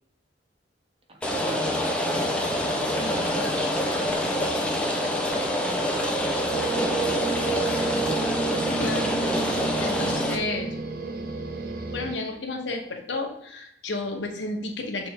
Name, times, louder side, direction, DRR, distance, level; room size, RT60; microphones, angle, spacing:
voice 1, 1.1-5.0 5.6-7.8, equal, 30° right, 2 dB, 1.0 m, -42 dB
Rain, 1.2-10.4, left 1 dB, 5° left, 0.7 m, -26 dB
voice 2, 3.0-3.5 8.8-9.1 9.8-10.8 11.9-15.1, left 2 dB, 80° left, 3 dB, 1.0 m, -32 dB
sound 1, 6.5-12.2, right 5 dB, 50° right, 0.7 m, -31 dB
6.5 x 3.5 x 4.4 m, 0.76 s
head